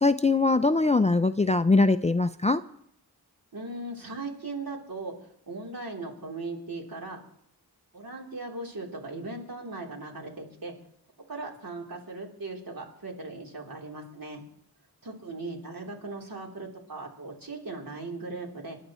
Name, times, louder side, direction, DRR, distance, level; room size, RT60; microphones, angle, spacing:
voice 1, 0.0-2.6, left 3 dB, 20° left, 11 dB, 0.4 m, -22 dB
voice 2, 3.5-5.1 5.5-7.2 7.9-10.7 11.3-14.4 15.0-18.8, right 3 dB, 60° right, -1 dB, 3.6 m, -38 dB
27.0 x 11.5 x 3.1 m, 0.73 s
wide cardioid pair, 75°, 39 cm